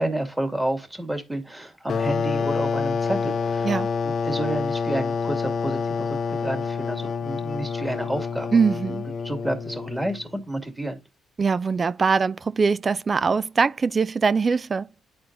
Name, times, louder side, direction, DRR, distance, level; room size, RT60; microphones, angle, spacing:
voice 1, 0.0-3.7 4.0-8.6 9.2-11.0, right 1 dB, 10° right, 2.3 m, -30 dB
sound 1, 1.9-10.3, left 5 dB, 55° left, 0.6 m, -27 dB
voice 2, 8.5-9.1 11.4-14.9, right 5 dB, 35° right, 0.4 m, -22 dB
11.0 x 4.4 x 2.5 m
cardioid pair, 90°, 0 cm